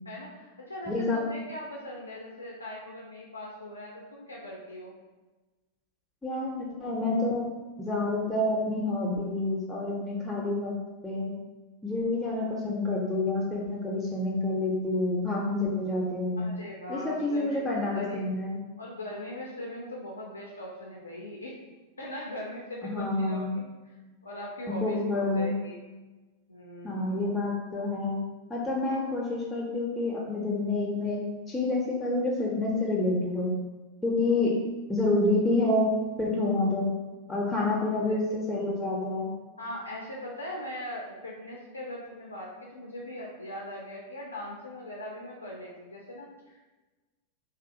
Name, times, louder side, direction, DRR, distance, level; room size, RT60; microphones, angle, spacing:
voice 1, 0.1-4.9 16.4-18.2 18.8-21.5 22.0-23.7 24.2-25.0 25.3-25.8 26.5-27.1 37.6-38.2 38.5-38.6 39.6-46.6, left 1 dB, 80° left, -2 dB, 0.3 m, -40 dB
voice 2, 0.9-1.2 6.2-6.5 6.8-7.5 7.8-10.7 11.0-11.3 11.8-16.4 16.9-18.6 22.8-23.6 24.7-25.5 26.8-28.2 28.5-31.2 31.5-33.5 34.0-34.5 34.9-36.9 37.3-39.3, left 2 dB, 5° left, -5 dB, 0.4 m, -28 dB
2.5 x 2.2 x 2.5 m, 1.2 s
figure-of-eight pair, 90°, 0 cm